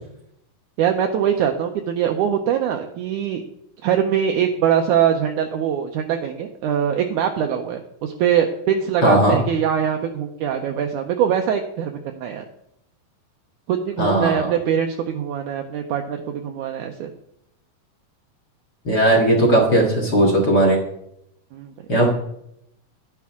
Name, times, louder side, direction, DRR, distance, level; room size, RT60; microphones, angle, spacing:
voice 1, 0.8-3.4 3.8-12.4 13.7-17.1 21.5-21.7, right 8 dB, 80° right, 4 dB, 1.8 m, -22 dB
voice 2, 9.0-9.4 14.0-14.5 18.9-20.8 21.9-22.1, right 1 dB, 40° left, -1 dB, 1.7 m, -17 dB
11.0 x 10.5 x 3.6 m, 0.79 s
omnidirectional pair, 4.1 m